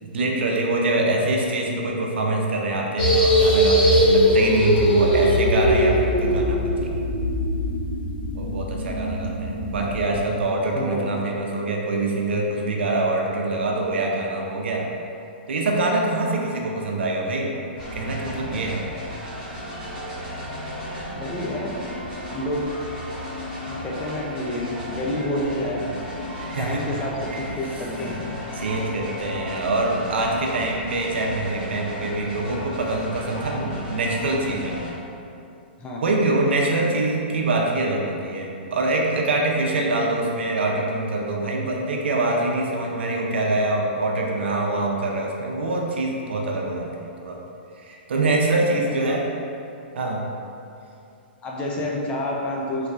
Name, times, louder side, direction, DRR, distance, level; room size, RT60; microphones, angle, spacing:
voice 1, 0.0-7.0 8.3-14.9 15.5-17.5 17.9-18.8 26.4-26.8 27.3-27.5 28.5-34.8 36.0-46.9 47.2-47.4 47.8-49.2 49.9-50.3, right 2 dB, 80° right, 0 dB, 0.6 m, -24 dB
sound 1, 3.0-10.0, equal, 50° left, 1.0 m, -20 dB
sound 2, 17.7-34.9, equal, 10° right, 1.3 m, -34 dB
voice 2, 21.1-21.8 22.3-22.6 23.7-25.8 26.6-27.1 27.4-28.2 35.8-36.0 48.9-49.2 51.4-52.9, left 1 dB, 15° left, -3 dB, 0.4 m, -29 dB
3.2 x 3.2 x 2.5 m, 2.6 s
hypercardioid pair, 150°, 6 cm